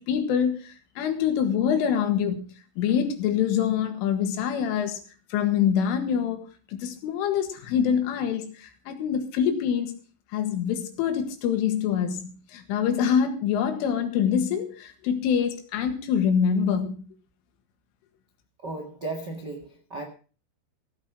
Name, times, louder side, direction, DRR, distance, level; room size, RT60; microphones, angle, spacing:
voice 1, 0.0-2.4 2.8-5.0 5.3-9.9 10.3-17.0, left 8 dB, 85° left, 4.3 m, -25 dB
voice 2, 18.6-20.0, right 2 dB, 65° right, 1.0 m, -35 dB
16.0 x 8.8 x 6.0 m
omnidirectional pair, 5.5 m